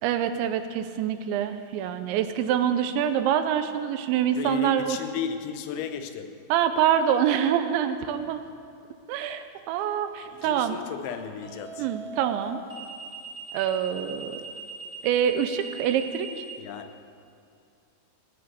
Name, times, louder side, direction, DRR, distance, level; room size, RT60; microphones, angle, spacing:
voice 1, 0.0-5.0 6.5-8.4 9.1-10.8 11.8-12.6 13.5-14.4 15.0-16.3, right 9 dB, 85° right, 9 dB, 3.0 m, -25 dB
voice 2, 4.4-6.3 10.2-11.9 16.6-16.9, left 7 dB, 85° left, 8 dB, 3.3 m, -34 dB
sound 1, 8.1-8.4 11.4-16.5, right 2 dB, 25° right, 2.0 m, -42 dB
16.0 x 10.0 x 6.9 m, 2.4 s
omnidirectional pair, 5.3 m